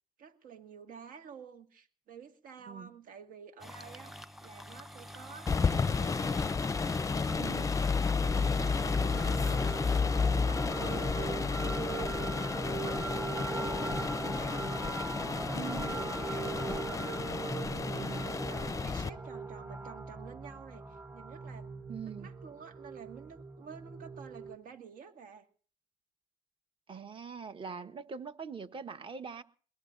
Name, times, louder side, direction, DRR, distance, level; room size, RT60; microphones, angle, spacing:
voice 1, 0.2-6.4 6.7-7.4 8.2-9.6 9.9-13.0 13.3-17.3 18.0-21.7 22.0-25.5, right 6 dB, 75° right, 6 dB, 1.9 m, -51 dB
sound 1, 3.6-10.0, equal, ahead, 0.9 m, -48 dB
sound 2, 5.5-19.1, left 5 dB, 20° left, 0.6 m, -31 dB
voice 2, 7.4-7.8 15.5-15.9 18.0-18.3 21.9-22.3 26.9-29.4, right 6 dB, 35° right, 9 dB, 1.2 m, -42 dB
sound 3, 8.2-24.5, right 4 dB, 20° right, 1.3 m, -40 dB
22.0 x 18.5 x 2.6 m, 0.43 s
supercardioid pair, 75°, 14 cm